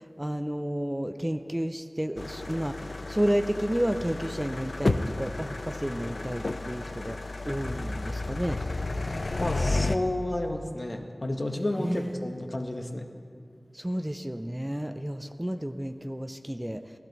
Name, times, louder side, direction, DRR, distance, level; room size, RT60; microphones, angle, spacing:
voice 1, 0.0-8.6 11.8-12.3 13.7-16.9, equal, 15° right, 8 dB, 0.5 m, -31 dB
sound 1, 2.2-10.0, left 2 dB, 70° left, 0.4 m, -32 dB
voice 2, 9.4-13.1, left 1 dB, 50° left, 4 dB, 1.0 m, -31 dB
14.5 x 12.0 x 4.0 m, 2.3 s
wide cardioid pair, 40°, 0 cm